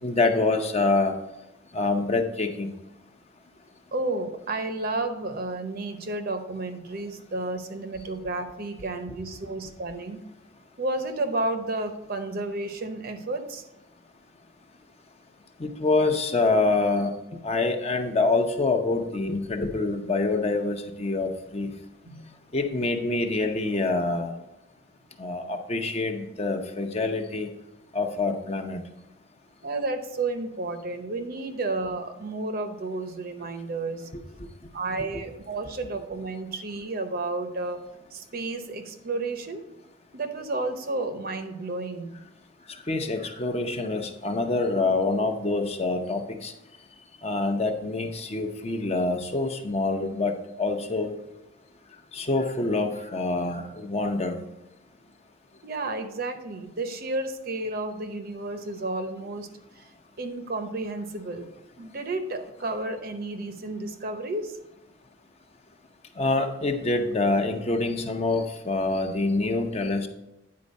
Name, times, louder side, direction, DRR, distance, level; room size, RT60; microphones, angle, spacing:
voice 1, 0.0-1.1 1.7-2.7 15.6-17.1 17.4-21.7 22.5-24.4 25.2-27.5 27.9-28.8 42.9-46.5 47.2-50.3 50.6-51.1 52.1-54.4 66.2-70.1, left 3 dB, 30° left, 5 dB, 0.7 m, -26 dB
voice 2, 3.9-10.2 10.8-13.6 22.0-22.3 29.6-34.1 34.7-37.8 38.1-39.6 40.1-42.1 55.6-59.5 59.7-59.8 60.2-61.5 61.8-64.6, right 2 dB, 50° right, 8 dB, 0.8 m, -31 dB
9.6 x 4.4 x 5.2 m, 0.92 s
head